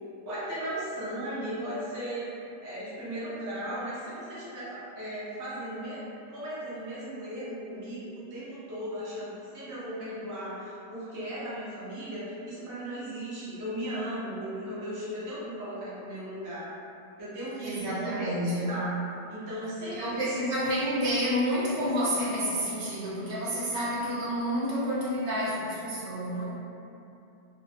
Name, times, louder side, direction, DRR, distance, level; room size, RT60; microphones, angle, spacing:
voice 1, 0.2-6.0 6.3-16.6 17.2-18.9 19.3-20.3, right 1 dB, 30° right, -11 dB, 0.3 m, -36 dB
voice 2, 17.6-18.8 19.9-26.5, equal, 65° right, -8 dB, 0.9 m, -29 dB
2.4 x 2.0 x 2.7 m, 2.7 s
omnidirectional pair, 1.4 m